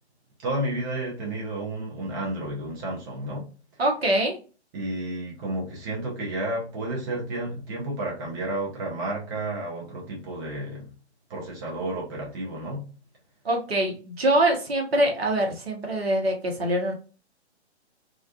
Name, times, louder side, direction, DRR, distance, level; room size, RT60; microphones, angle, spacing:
voice 1, 0.4-3.5 4.7-10.9 11.3-12.9, right 1 dB, 20° right, -3 dB, 0.6 m, -31 dB
voice 2, 3.8-4.4 13.4-16.9, right 1 dB, 65° right, 2 dB, 0.9 m, -24 dB
2.4 x 2.3 x 2.4 m, 0.35 s
figure-of-eight pair, 125°, 34 cm